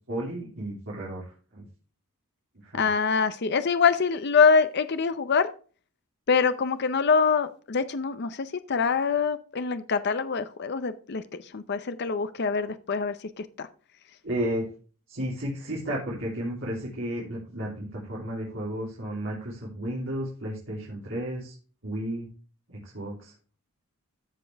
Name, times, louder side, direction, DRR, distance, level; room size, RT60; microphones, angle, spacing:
voice 1, 0.1-1.2 1.5-1.6 2.6-2.9 14.2-14.6 15.1-21.5 21.8-22.3 22.7-23.3, right 1 dB, 55° right, 3.2 m, -33 dB
voice 2, 2.7-5.5 6.3-11.2 11.5-13.1 13.6-13.7, left 5 dB, 50° left, 0.6 m, -24 dB
14.0 x 5.2 x 3.4 m
head